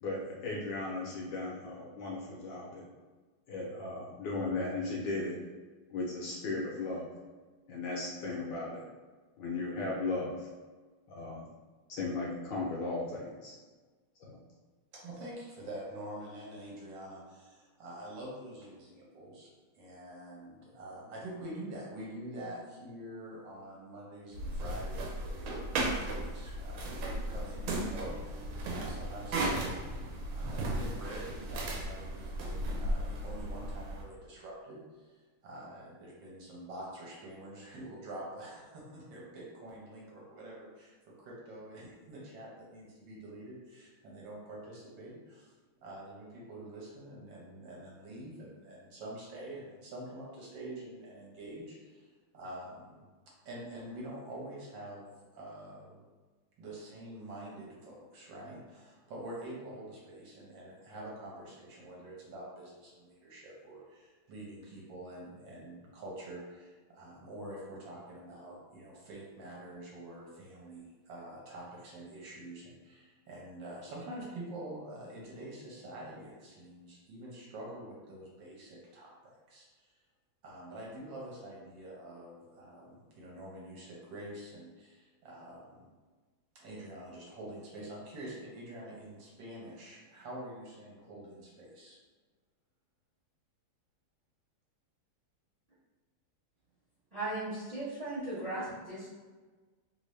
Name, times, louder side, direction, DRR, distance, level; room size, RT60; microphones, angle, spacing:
voice 1, 0.0-2.8 3.5-5.3 5.9-7.1 7.7-8.8 9.4-10.5 11.1-11.5 11.9-13.5 14.2-14.4, left 3 dB, 70° left, -3 dB, 1.2 m, -36 dB
voice 2, 14.9-30.0 30.3-45.5 45.8-53.0 53.4-56.0 56.6-79.9 80.4-85.9 86.5-92.0, right 1 dB, 65° right, -4 dB, 1.5 m, -46 dB
sound 1, 24.3-34.0, right 1 dB, 90° right, 1.5 m, -35 dB
voice 3, 97.1-99.1, right 2 dB, 35° right, -9 dB, 0.6 m, -37 dB
3.4 x 2.6 x 3.1 m, 1.4 s
omnidirectional pair, 2.3 m